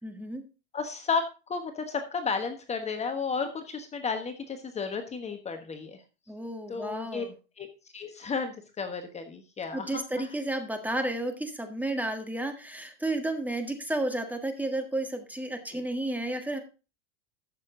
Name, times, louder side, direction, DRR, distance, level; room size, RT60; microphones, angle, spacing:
voice 1, 0.0-0.4 6.3-7.3 9.7-16.6, right 1 dB, 5° right, 5 dB, 1.6 m, -32 dB
voice 2, 0.7-6.0 6.7-7.2 7.6-7.7 7.9-10.3 15.7-15.8, left 5 dB, 20° left, 7 dB, 1.3 m, -33 dB
13.0 x 6.7 x 3.8 m, 0.32 s
supercardioid pair, 110°, 29 cm